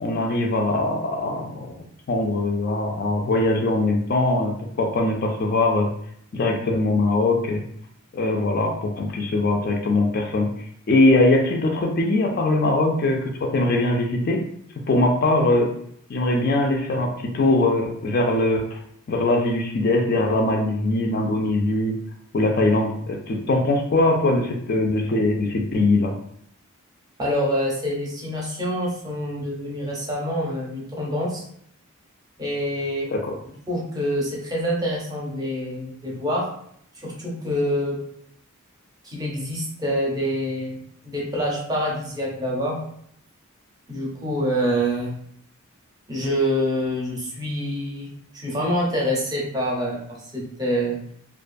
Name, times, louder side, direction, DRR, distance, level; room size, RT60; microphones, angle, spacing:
voice 1, 0.0-1.7 2.1-5.9 6.3-7.6 8.1-10.5 10.9-14.4 14.9-15.7 16.1-18.8 19.1-21.9 22.3-26.1 33.1-33.3, left 2 dB, 45° left, 1 dB, 0.3 m, -21 dB
voice 2, 27.2-31.4 32.4-33.1 33.4-36.5 37.0-38.0 39.0-40.8 41.0-42.8 43.9-45.1 46.1-51.0, equal, 15° right, -3 dB, 0.5 m, -26 dB
2.4 x 2.2 x 2.5 m, 0.68 s
head